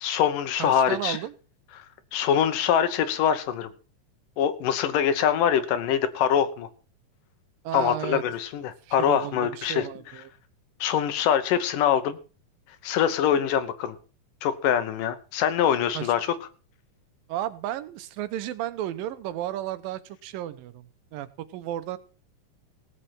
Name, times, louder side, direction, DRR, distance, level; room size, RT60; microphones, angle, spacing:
voice 1, 0.0-1.2 1.8-1.9 2.1-3.7 4.4-6.7 7.7-9.9 10.8-12.2 12.8-13.9 14.4-16.3, left 9 dB, 75° left, 11 dB, 2.7 m, -24 dB
voice 2, 0.6-1.3 7.6-8.2 8.9-10.3 15.9-16.1 17.3-22.0, right 12 dB, 90° right, 13 dB, 2.6 m, -33 dB
17.0 x 7.8 x 6.0 m, 0.37 s
omnidirectional pair, 3.9 m